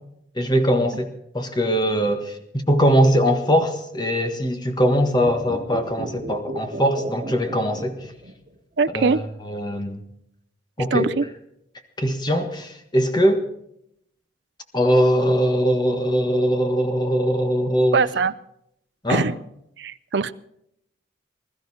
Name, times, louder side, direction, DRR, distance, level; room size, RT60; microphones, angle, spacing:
voice 1, 0.3-8.1 8.9-10.0 10.8-11.1 12.0-13.4 14.7-18.0 19.0-19.3, equal, 20° left, 6 dB, 1.5 m, -21 dB
sound 1, 5.1-8.5 8.8-8.9, right 1 dB, 40° right, 2.4 m, -34 dB
voice 2, 8.8-9.2 10.9-11.2 17.9-18.3 19.1-19.3 19.8-20.3, right 4 dB, 60° right, 12 dB, 0.5 m, -21 dB
21.0 x 13.0 x 4.3 m, 0.75 s
head